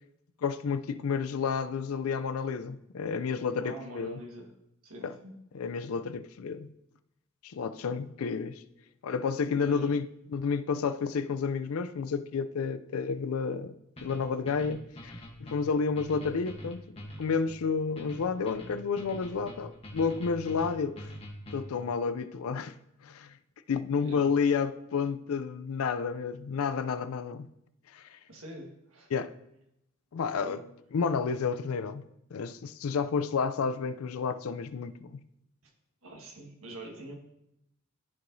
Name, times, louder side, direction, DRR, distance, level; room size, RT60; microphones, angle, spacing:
voice 1, 0.4-4.2 5.0-5.1 5.5-6.7 7.4-8.6 9.0-13.7 14.0-16.8 17.2-21.1 21.5-22.7 23.0-23.4 23.7-27.5 27.9-28.2 29.1-29.3 30.1-30.6 30.9-32.1 32.3-35.2, left 5 dB, 90° left, 0.4 m, -31 dB
voice 2, 3.6-4.5 4.8-5.3 9.4-10.0 23.9-24.3 28.3-29.1 30.4-30.7 36.0-37.1, right 1 dB, 80° right, 1.5 m, -45 dB
sound 1, 14.0-21.9, equal, 30° left, 1.0 m, -45 dB
13.0 x 4.7 x 2.7 m
head